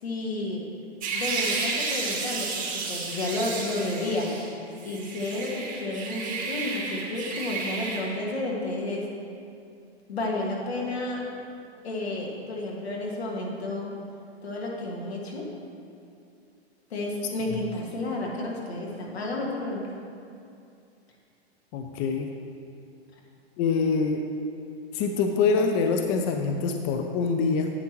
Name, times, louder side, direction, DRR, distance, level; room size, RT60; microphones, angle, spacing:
voice 1, 0.0-0.7 1.1-9.1 10.1-11.2 11.8-13.9 14.4-15.5 16.9-20.0, left 2 dB, 75° left, -2 dB, 1.9 m, -31 dB
sound 1, 1.0-4.5 4.8-8.0, right 4 dB, 25° right, 2.0 m, -32 dB
voice 2, 21.7-22.3 23.6-24.2 24.9-27.7, left 4 dB, 35° left, 4 dB, 0.6 m, -25 dB
10.5 x 8.7 x 3.0 m, 2.5 s
hypercardioid pair, 110°, 32 cm